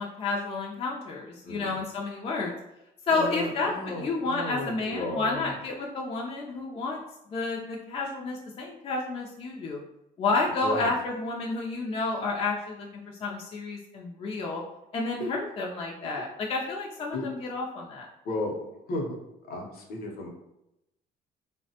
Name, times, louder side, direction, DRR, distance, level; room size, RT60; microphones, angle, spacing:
voice 1, 0.0-2.5 3.1-7.0 7.3-9.8 10.2-14.6 14.9-18.1, left 3 dB, 35° left, -1 dB, 0.4 m, -30 dB
voice 2, 1.4-1.8 3.1-5.5 10.6-10.9 15.2-15.3 17.1-17.3 18.2-19.2 19.4-20.3, left 2 dB, 65° left, 1 dB, 0.7 m, -34 dB
3.4 x 2.1 x 2.7 m, 0.88 s
cardioid pair, 110°, 17 cm